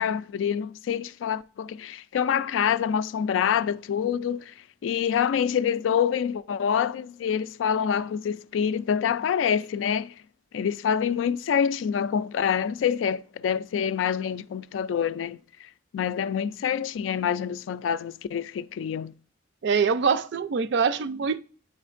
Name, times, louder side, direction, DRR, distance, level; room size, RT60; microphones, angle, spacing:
voice 1, 0.0-4.5 4.8-10.1 10.5-15.4 15.9-19.1, left 8 dB, 85° left, 0.3 m, -26 dB
voice 2, 19.6-21.4, right 5 dB, 65° right, 0.4 m, -24 dB
9.0 x 4.2 x 2.5 m
head